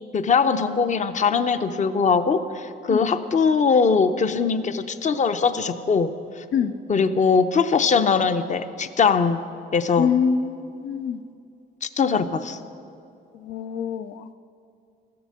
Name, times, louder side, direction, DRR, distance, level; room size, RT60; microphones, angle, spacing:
voice 1, 0.1-6.1 6.9-9.4 9.7-10.1 11.8-12.6, left 5 dB, 40° left, 11 dB, 0.7 m, -21 dB
voice 2, 10.0-11.2 13.4-14.3, left 7 dB, 80° left, 10 dB, 0.5 m, -25 dB
14.0 x 7.0 x 7.6 m, 2.5 s
cardioid pair, 90°, 20 cm